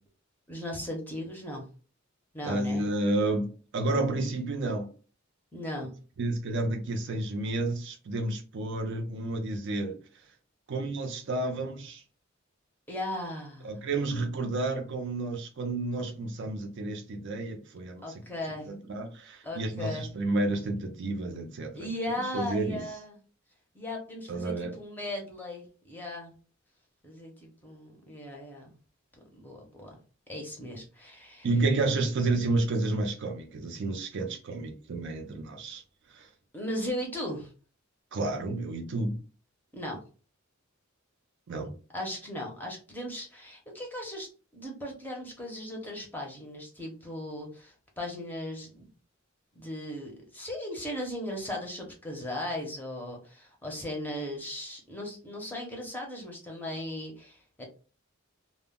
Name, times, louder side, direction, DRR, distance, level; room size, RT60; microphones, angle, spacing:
voice 1, 0.5-1.7 2.3-2.8 5.5-5.9 12.9-13.9 18.0-18.7 19.4-20.1 21.7-23.2 23.7-26.3 27.0-28.7 29.3-29.9 30.3-31.5 36.5-37.5 39.7-40.0 41.9-48.8 49.6-57.6, left 1 dB, 10° left, 0.6 m, -37 dB
voice 2, 2.4-4.9 6.2-10.0 10.7-12.0 13.6-18.1 18.5-21.9 22.3-22.8 24.3-24.8 31.4-35.8 36.1-36.3 38.1-39.2 41.5-41.7, right 2 dB, 60° right, 0.4 m, -30 dB
2.1 x 2.0 x 3.5 m
head